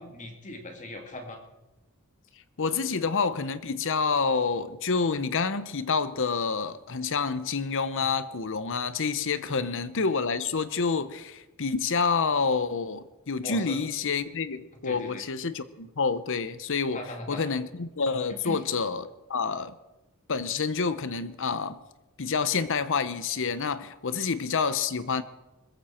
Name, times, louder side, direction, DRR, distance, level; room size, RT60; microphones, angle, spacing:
voice 1, 0.0-1.4 9.5-9.7 13.4-13.8 14.8-15.2 16.9-17.5 18.3-18.6, left 1 dB, 35° left, 2.3 m, -40 dB
voice 2, 2.6-17.0 17.3-19.8 20.3-21.8 22.2-25.2, left 5 dB, 60° left, 0.9 m, -28 dB
20.5 x 15.0 x 4.4 m
head